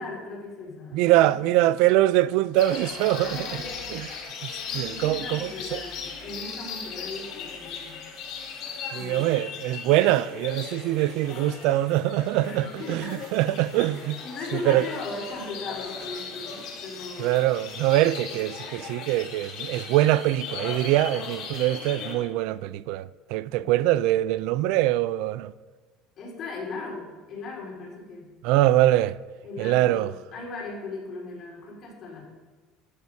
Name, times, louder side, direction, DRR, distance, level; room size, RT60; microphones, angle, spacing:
voice 1, 0.0-1.4 3.0-4.1 4.7-8.0 8.9-9.3 12.4-13.2 13.9-17.4 18.1-18.8 23.5-24.0 26.2-28.3 29.4-32.2, left 3 dB, 40° left, 4.0 m, -38 dB
voice 2, 0.9-3.4 3.9-4.1 4.4-5.8 8.9-14.2 14.5-14.9 17.2-25.5 28.4-29.2 29.6-30.1, right 15 dB, 70° right, 0.4 m, -23 dB
sound 1, 2.5-22.1, left 5 dB, 60° left, 3.9 m, -38 dB
17.0 x 11.0 x 2.8 m
cardioid pair, 155°, 0 cm